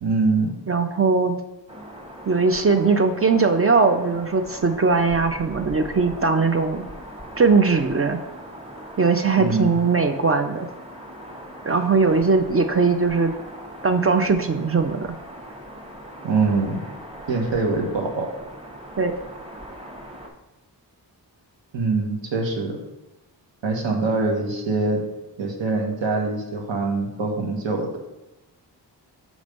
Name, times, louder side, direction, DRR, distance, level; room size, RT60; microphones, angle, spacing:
voice 1, 0.0-0.5 9.4-9.8 16.2-16.8 17.3-18.3 21.7-22.8 23.6-25.0 25.4-28.0, right 3 dB, 75° right, 2 dB, 1.3 m, -23 dB
voice 2, 0.7-1.4 2.3-6.8 7.4-8.2 9.0-10.7 11.7-13.3 13.8-15.1 19.0-19.1, right 4 dB, 30° right, 7 dB, 0.5 m, -20 dB
sound 1, 1.7-20.3, equal, 15° right, 1.3 m, -40 dB
6.0 x 3.2 x 5.3 m, 0.98 s
cardioid pair, 55°, 44 cm